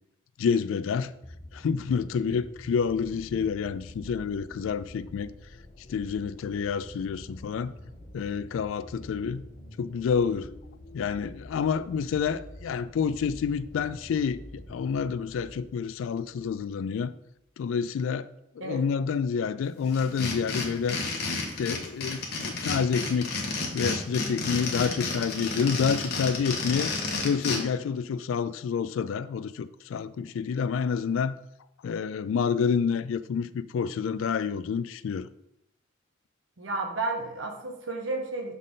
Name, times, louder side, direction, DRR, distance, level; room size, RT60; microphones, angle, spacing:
voice 1, 0.4-1.1 1.5-5.3 5.9-7.7 8.1-9.5 9.8-10.5 10.9-17.1 17.6-18.3 18.6-21.0 21.6-23.4 23.7-26.9 27.2-31.4 31.8-35.3, left 6 dB, 75° left, 0.3 m, -28 dB
sound 1, 1.2-16.6 17.4-17.5, left 1 dB, 35° left, 0.7 m, -47 dB
sound 2, 19.9-27.6, left 3 dB, 50° left, 1.0 m, -31 dB
voice 2, 36.6-38.6, right 3 dB, 70° right, 1.0 m, -32 dB
6.4 x 4.1 x 3.7 m
head